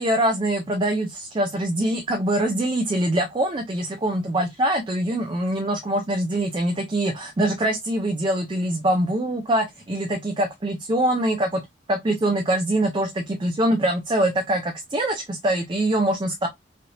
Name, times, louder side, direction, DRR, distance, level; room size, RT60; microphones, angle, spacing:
voice 1, 0.0-11.6 11.9-16.5, right 1 dB, 25° right, 0.4 m, -23 dB
3.2 x 2.8 x 2.5 m
head